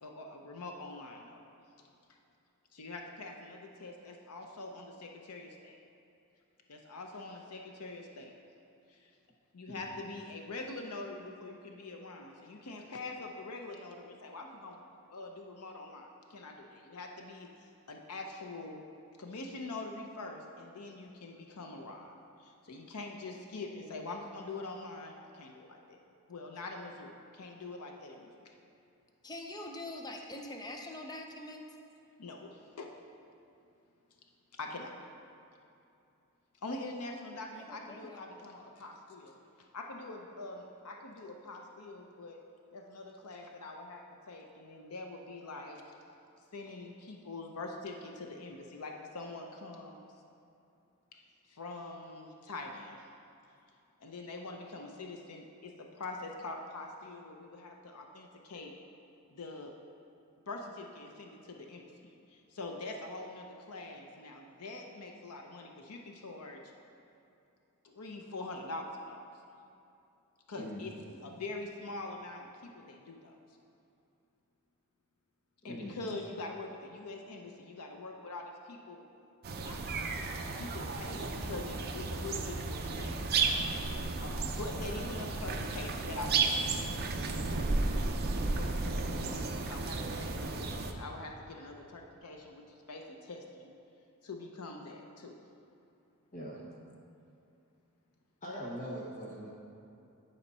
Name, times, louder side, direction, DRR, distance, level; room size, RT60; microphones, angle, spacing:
voice 1, 0.0-1.4 2.7-5.8 6.7-8.3 8.9-9.1 9.5-14.8 15.1-18.8 19.2-26.0 26.3-28.5 31.8-31.9 32.2-32.9 34.5-35.0 36.6-42.4 42.7-45.9 46.5-50.1 51.1-51.2 51.5-53.1 54.0-58.7 59.3-59.7 60.5-66.6 67.8-69.3 70.5-70.9 71.2-73.4 75.6-79.0 79.6-83.8 84.2-86.9 88.4-93.7 94.2-95.4, left 2 dB, 90° left, 2 dB, 0.7 m, -44 dB
voice 2, 29.2-31.6 37.5-38.2, left 1 dB, 20° left, 2 dB, 0.5 m, -44 dB
voice 3, 70.6-71.1 75.6-76.0 80.1-80.2 96.3-96.6 98.4-99.5, equal, 35° left, -6 dB, 1.0 m, -42 dB
sound 1, 79.4-90.9, right 3 dB, 45° right, 0.6 m, -33 dB
11.0 x 4.3 x 5.4 m, 2.7 s
head